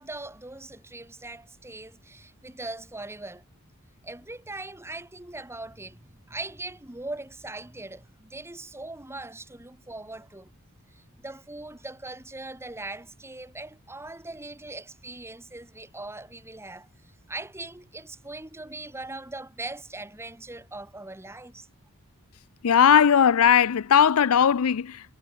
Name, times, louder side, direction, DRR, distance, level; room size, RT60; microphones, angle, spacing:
voice 1, 0.0-3.4 4.0-10.5 10.9-16.9 17.3-21.7, right 2 dB, 10° right, 1.6 m, -40 dB
voice 2, 22.6-25.2, left 8 dB, 75° left, 0.5 m, -19 dB
head